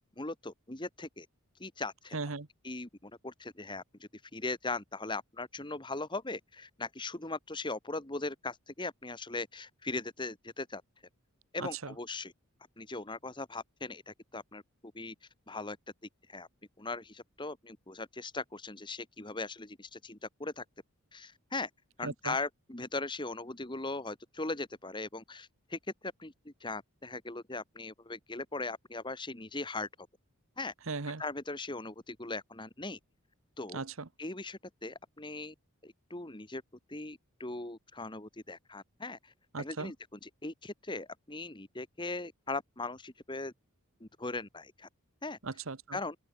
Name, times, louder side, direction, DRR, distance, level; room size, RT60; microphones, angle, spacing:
voice 1, 0.2-1.3 1.6-2.2 2.6-10.8 11.5-12.3 12.8-15.2 15.5-15.8 16.3-16.5 16.8-20.6 21.1-21.7 22.0-30.1 30.6-30.7 31.2-33.0 33.6-33.8 34.2-35.5 35.8-36.6 36.9-43.5 44.0-44.9 45.2-45.4 45.9-46.2, left 3 dB, 20° left, 1.8 m, -39 dB
voice 2, 2.1-2.5 11.6-11.9 22.0-22.3 30.9-31.2 33.7-34.1 39.5-39.9 45.4-46.0, right 4 dB, 60° right, 1.1 m, -38 dB
open air
head